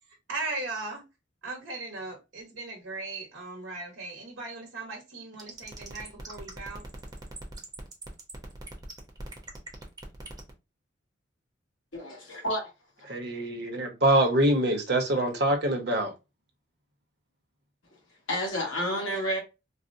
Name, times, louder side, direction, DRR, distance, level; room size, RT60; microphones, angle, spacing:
voice 1, 0.0-1.0 1.4-6.8, right 3 dB, 80° right, 1.1 m, -38 dB
sound 1, 5.4-10.5, right 3 dB, 20° right, 0.7 m, -42 dB
voice 2, 11.9-12.7 18.3-19.4, equal, 80° left, 1.4 m, -30 dB
voice 3, 13.1-16.1, right 1 dB, 55° right, 0.8 m, -24 dB
4.1 x 2.0 x 2.5 m
head